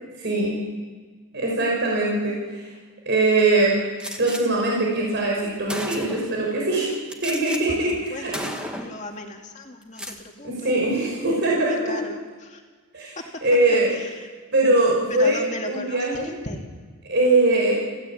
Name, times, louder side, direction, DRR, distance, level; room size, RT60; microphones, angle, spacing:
voice 1, 0.2-0.6 1.3-2.7 3.1-3.7 4.2-6.9 7.2-8.5 10.4-12.0 12.9-13.9 14.5-15.4 15.6-16.4 17.0-17.8, right 2 dB, 50° right, -3 dB, 5.8 m, -22 dB
Gunshot gunfire, 4.0-4.4 5.2-5.3 5.7-6.4 7.1-7.6 7.9-8.1 8.3-9.0 9.8-10.2, equal, 5° right, 1.8 m, -33 dB
voice 2, 8.1-11.2 11.7-12.6 14.2-14.3 15.1-16.6, left 1 dB, 30° left, 2 dB, 2.5 m, -37 dB
23.0 x 16.0 x 8.7 m, 1.5 s
head